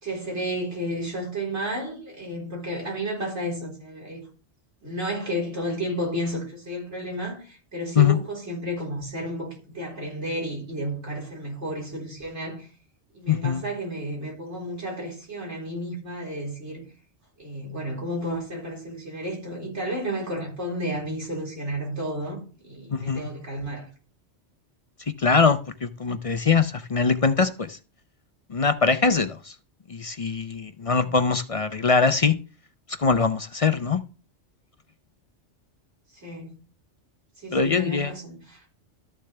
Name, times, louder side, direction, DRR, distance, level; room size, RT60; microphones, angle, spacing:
voice 1, 0.0-4.3 4.8-12.7 13.1-16.8 17.4-23.9 30.8-31.2 36.1-36.6 37.4-38.6, equal, 75° right, 4.5 m, -32 dB
voice 2, 13.3-13.6 22.9-23.3 25.2-27.8 28.5-29.5 29.9-32.3 33.0-34.0 37.5-38.1, left 5 dB, 40° left, 0.5 m, -22 dB
13.0 x 6.7 x 3.4 m
omnidirectional pair, 1.2 m